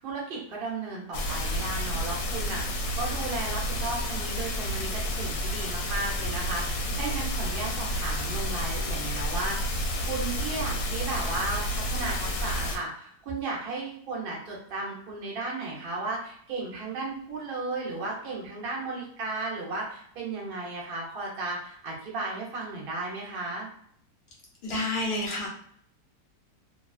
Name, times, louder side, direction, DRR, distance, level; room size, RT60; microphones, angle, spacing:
voice 1, 0.0-2.6 2.9-9.8 10.1-23.7, right 3 dB, 50° right, -4 dB, 0.7 m, -34 dB
sound 1, 1.1-12.8, equal, 85° left, 1.2 m, -30 dB
voice 2, 24.6-25.5, left 2 dB, 45° left, -5 dB, 0.7 m, -29 dB
2.9 x 2.2 x 2.4 m, 0.64 s
omnidirectional pair, 1.9 m